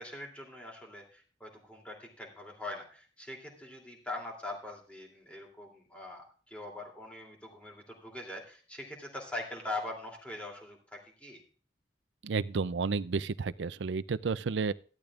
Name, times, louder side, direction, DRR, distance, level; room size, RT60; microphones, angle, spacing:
voice 1, 0.0-11.4, left 2 dB, 5° left, 2.9 m, -42 dB
voice 2, 12.2-14.7, right 4 dB, 80° right, 0.5 m, -31 dB
15.5 x 12.0 x 2.4 m
head